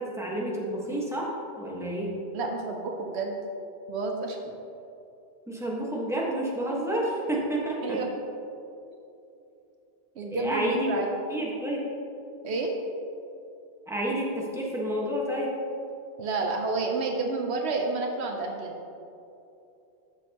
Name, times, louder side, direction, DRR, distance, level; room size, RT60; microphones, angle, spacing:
voice 1, 0.0-2.2 5.5-8.0 10.3-10.9 11.3-11.8 13.9-15.5, right 1 dB, 5° right, -4 dB, 1.3 m, -30 dB
voice 2, 2.3-3.4 3.9-4.4 7.8-8.1 10.2-11.1 12.4-12.8 16.2-18.8, right 3 dB, 85° right, 2 dB, 1.0 m, -30 dB
13.5 x 6.3 x 2.9 m, 2.8 s
omnidirectional pair, 1.1 m